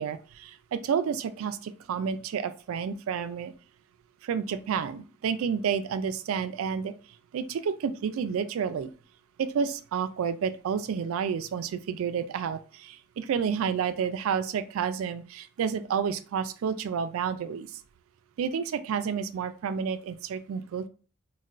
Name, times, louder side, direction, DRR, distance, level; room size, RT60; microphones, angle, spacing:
voice 1, 0.0-3.5 4.2-6.9 7.3-8.9 9.4-17.7 18.4-20.9, right 7 dB, 80° right, 12 dB, 0.3 m, -30 dB
4.0 x 2.2 x 2.4 m, 0.38 s
head